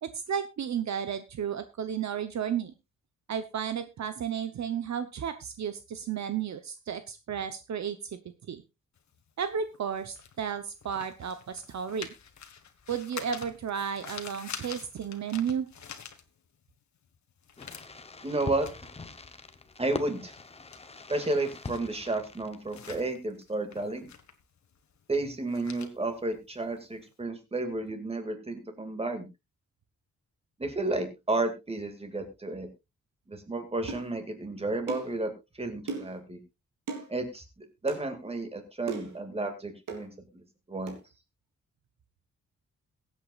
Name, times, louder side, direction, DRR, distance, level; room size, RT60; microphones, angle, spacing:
voice 1, 0.0-2.7 3.3-8.0 8.5-8.6 9.4-12.1 12.9-15.7, right 8 dB, 60° right, 10 dB, 0.9 m, -33 dB
sound 1, 9.0-16.7 17.0-27.1, left 7 dB, 65° left, 1.7 m, -47 dB
Fireworks, 17.6-23.2, left 3 dB, 20° left, 0.9 m, -42 dB
voice 2, 18.2-18.7 19.8-20.3 21.1-24.1 25.1-29.3 30.6-32.7 33.3-35.3 35.6-36.4 37.1-40.4 40.7-40.9, right 2 dB, 20° right, 6 dB, 2.3 m, -32 dB
sound 2, 33.9-34.1 34.9-35.1 35.9-36.2 36.9-37.1 37.9-38.0 38.9-39.2 39.9-40.1 40.9-41.0, right 4 dB, 85° right, 3.3 m, -37 dB
22.0 x 8.4 x 2.4 m, 0.24 s
wide cardioid pair, 155°, 31 cm